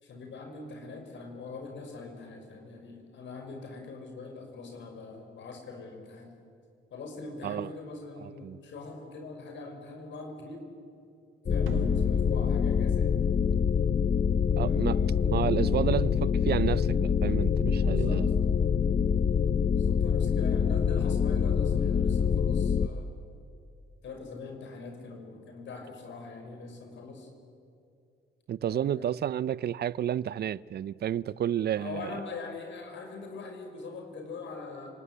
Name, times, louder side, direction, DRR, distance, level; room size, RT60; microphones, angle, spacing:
voice 1, 0.0-6.3 6.9-10.7 11.5-13.1 14.5-15.3 17.9-18.2 19.7-23.1 24.0-27.3 28.6-29.1 31.6-34.9, left 3 dB, 70° left, 6.0 m, -42 dB
voice 2, 8.2-8.6 14.6-18.3 28.5-32.1, right 10 dB, 55° right, 0.6 m, -31 dB
sound 1, 11.4-22.9, left 7 dB, 35° left, 0.7 m, -25 dB
sound 2, 11.7-14.2, right 8 dB, 85° right, 1.3 m, -43 dB
29.5 x 19.5 x 9.8 m
cardioid pair, 90°, 20 cm